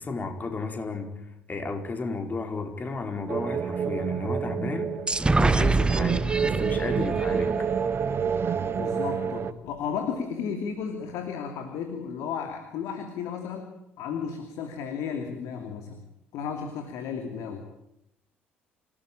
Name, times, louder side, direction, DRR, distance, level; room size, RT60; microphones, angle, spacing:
voice 1, 0.0-5.0 5.4-7.7, left 3 dB, 30° left, 5 dB, 4.7 m, -33 dB
sound 1, 3.3-9.5, right 7 dB, 40° right, 1.3 m, -28 dB
sound 2, 5.1-8.7, right 3 dB, 15° right, 1.0 m, -26 dB
voice 2, 8.7-16.0 16.3-17.6, left 6 dB, 60° left, 6 dB, 2.8 m, -34 dB
27.5 x 18.5 x 8.9 m, 0.81 s
figure-of-eight pair, 50°, 6 cm